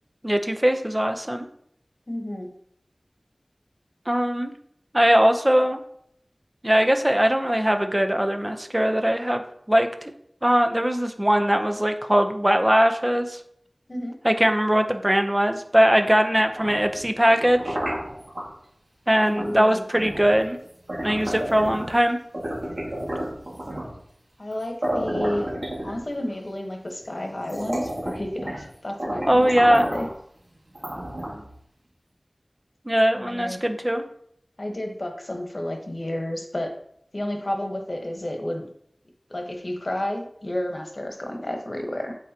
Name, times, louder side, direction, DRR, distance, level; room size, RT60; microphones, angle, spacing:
voice 1, 0.2-1.4 4.1-4.5 4.9-5.8 6.6-9.4 9.7-10.1 10.4-13.4 14.2-17.8 19.1-20.6 21.0-22.2 29.3-29.9 32.9-34.0, equal, 20° right, 6 dB, 0.7 m, -20 dB
voice 2, 2.1-2.5 13.9-14.1 19.2-19.8 24.4-25.5 25.8-30.1 33.1-33.6 34.6-36.7 37.1-38.7 39.3-42.1, left 1 dB, 55° left, 3 dB, 1.2 m, -31 dB
sound 1, 16.4-18.5 19.4-19.6 19.9-22.0 22.3-24.0 24.5-24.6 24.8-26.3 27.0-27.1 27.4-28.7 29.0-30.1 30.7-31.5, right 1 dB, 65° right, 2.1 m, -31 dB
8.3 x 4.7 x 2.9 m, 0.68 s
wide cardioid pair, 45°, 0 cm